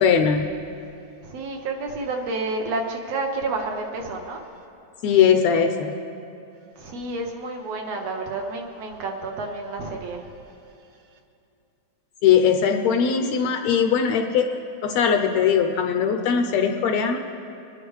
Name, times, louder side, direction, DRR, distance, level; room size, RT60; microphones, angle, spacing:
voice 1, 0.0-0.4 5.0-5.9 12.2-17.2, left 7 dB, 75° left, 5 dB, 1.7 m, -20 dB
voice 2, 1.2-4.4 6.8-10.2, right 3 dB, 70° right, 3 dB, 1.8 m, -30 dB
25.5 x 9.9 x 3.2 m, 2.7 s
omnidirectional pair, 3.5 m